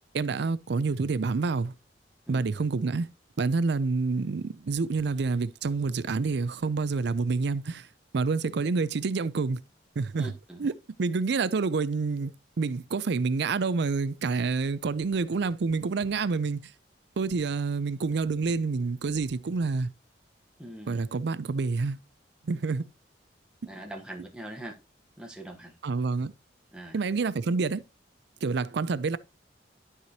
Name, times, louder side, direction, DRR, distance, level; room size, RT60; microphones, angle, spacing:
voice 1, 0.1-1.7 2.3-3.1 3.4-7.9 8.1-9.6 10.0-10.3 10.6-10.7 11.0-16.7 17.2-19.9 20.9-22.0 22.5-22.8 25.8-26.3 26.9-27.8 28.4-29.2, right 4 dB, 65° right, 0.5 m, -28 dB
voice 2, 10.2-10.6 20.6-21.0 23.6-24.7 25.2-25.7 26.7-27.0, right 1 dB, 5° right, 1.0 m, -42 dB
12.0 x 4.9 x 2.8 m
head